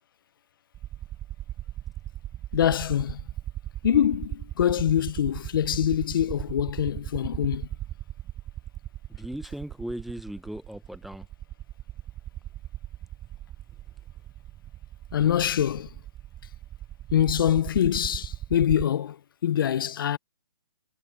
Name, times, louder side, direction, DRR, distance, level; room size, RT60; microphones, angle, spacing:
sound 1, 0.7-18.9, right 13 dB, 20° right, 7.3 m, -38 dB
voice 1, 2.5-3.2 3.8-7.7 15.1-15.9 17.1-19.2 19.4-20.2, left 10 dB, 55° left, 1.0 m, -24 dB
voice 2, 9.1-11.3, equal, ahead, 0.8 m, -37 dB
hypercardioid pair, 140°, 14 cm